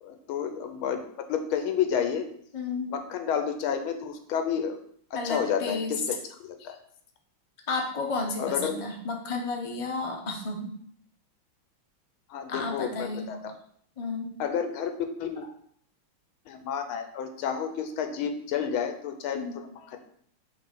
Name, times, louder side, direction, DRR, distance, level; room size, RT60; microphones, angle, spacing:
voice 1, 0.0-2.3 2.9-4.8 5.1-6.2 6.6-6.8 8.4-8.7 12.3-13.5 14.4-15.5 16.5-20.0, left 7 dB, 80° left, 7 dB, 1.5 m, -30 dB
voice 2, 2.5-2.9 5.1-5.9 7.7-10.7 12.5-13.3 14.0-14.3 19.3-19.6, left 3 dB, 35° left, 0 dB, 0.5 m, -32 dB
5.3 x 3.6 x 5.8 m, 0.63 s
omnidirectional pair, 2.3 m